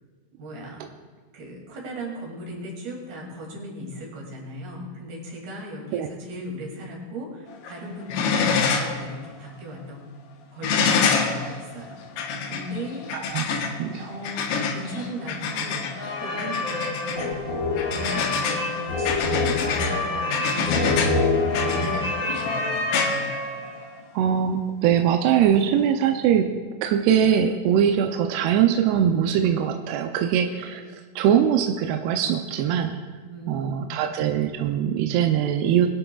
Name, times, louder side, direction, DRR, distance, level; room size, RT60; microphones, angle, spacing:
voice 1, 0.4-0.8 1.3-10.1 10.5-12.0 12.5-13.7 14.1-17.4 17.9-21.0 21.6-23.1 33.3-34.3, equal, 60° right, -1 dB, 4.3 m, -37 dB
sound 1, 7.5-7.8 8.1-9.0 9.4-9.5 10.6-24.0 25.4-25.5, left 5 dB, 70° left, 2.8 m, -27 dB
voice 2, 13.1-14.1 24.1-26.5 26.8-32.9 33.5-35.9, right 9 dB, 80° right, 4 dB, 2.4 m, -22 dB
sound 2, 15.9-23.8, left 3 dB, 55° left, 1.0 m, -26 dB
21.5 x 11.5 x 2.3 m, 1.4 s
omnidirectional pair, 5.2 m